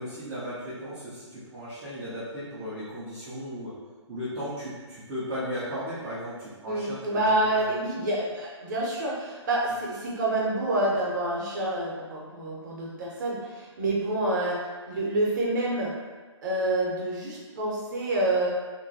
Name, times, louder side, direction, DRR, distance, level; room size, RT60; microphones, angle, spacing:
voice 1, 0.0-3.7 4.1-7.3 7.5-7.7, equal, 10° right, -13 dB, 0.3 m, -36 dB
voice 2, 6.6-15.9 16.4-18.5, right 1 dB, 40° right, -3 dB, 0.7 m, -28 dB
2.9 x 2.1 x 2.6 m, 1.3 s
figure-of-eight pair, 135°, 15 cm